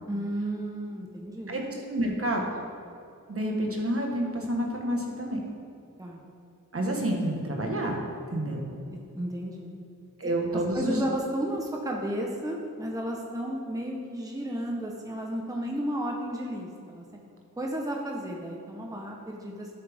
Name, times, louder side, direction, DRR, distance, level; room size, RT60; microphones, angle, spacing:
voice 1, 0.1-1.5 6.0-6.2 8.9-9.8 10.7-17.0 17.6-19.7, right 1 dB, 10° right, -1 dB, 1.0 m, -33 dB
voice 2, 1.5-2.5 3.3-5.4 6.7-8.0 8.3-8.6 10.2-11.0, right 1 dB, 45° right, 0 dB, 1.4 m, -29 dB
13.0 x 7.1 x 3.6 m, 2.5 s
wide cardioid pair, 100°, 33 cm